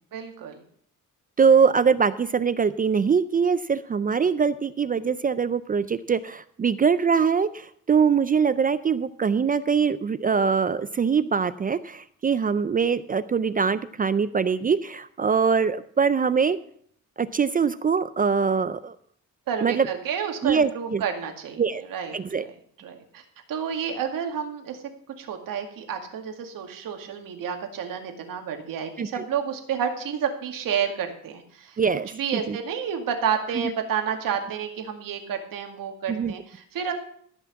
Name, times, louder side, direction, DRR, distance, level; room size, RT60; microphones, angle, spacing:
voice 1, 0.1-0.6 19.5-22.2 22.8-23.2 23.5-24.8 25.2-31.8 32.1-36.9, right 7 dB, 85° right, 4 dB, 2.1 m, -30 dB
voice 2, 1.4-16.6 17.2-19.0 19.6-19.9 20.4-21.0 21.6-21.8 22.1-22.5 29.0-29.1 31.8-32.1 32.5-32.6 36.1-36.3, right 6 dB, 25° right, 14 dB, 0.4 m, -23 dB
14.5 x 6.0 x 7.0 m, 0.63 s
cardioid pair, 150°, 33 cm